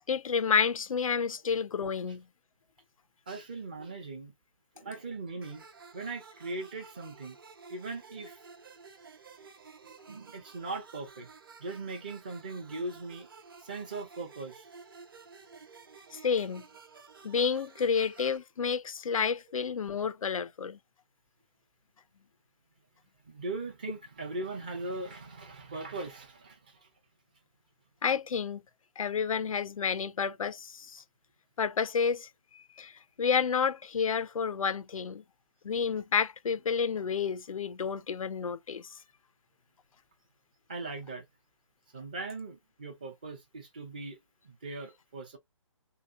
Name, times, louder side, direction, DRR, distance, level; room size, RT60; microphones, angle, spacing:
voice 1, 0.1-2.2 16.1-16.6 17.2-20.8 28.0-28.6 29.0-31.0 31.6-32.3 32.5-35.2 35.6-38.9, left 6 dB, 85° left, 0.5 m, -30 dB
voice 2, 3.3-4.3 4.8-5.6 5.9-7.4 7.7-8.4 9.8-11.3 11.6-13.3 13.6-14.7 23.3-26.9 40.7-41.2 41.9-44.2 44.4-45.4, right 3 dB, 15° right, 0.5 m, -39 dB
sound 1, 5.4-18.4, right 5 dB, 40° right, 0.8 m, -53 dB
3.0 x 2.8 x 2.4 m
hypercardioid pair, 170°, 17 cm